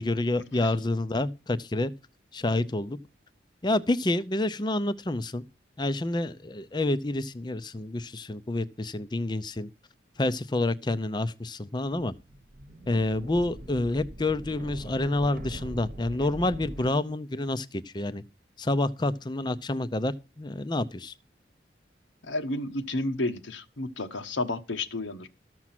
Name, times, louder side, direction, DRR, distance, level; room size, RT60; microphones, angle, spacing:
voice 1, 0.0-1.9 2.3-3.0 3.6-5.4 5.8-9.7 10.2-12.1 12.9-18.2 18.6-21.1, left 2 dB, 25° left, 0.5 m, -28 dB
sound 1, 12.2-16.9, right 1 dB, 45° right, 1.0 m, -42 dB
voice 2, 22.2-25.3, left 2 dB, 90° left, 1.2 m, -31 dB
13.5 x 6.1 x 5.9 m
head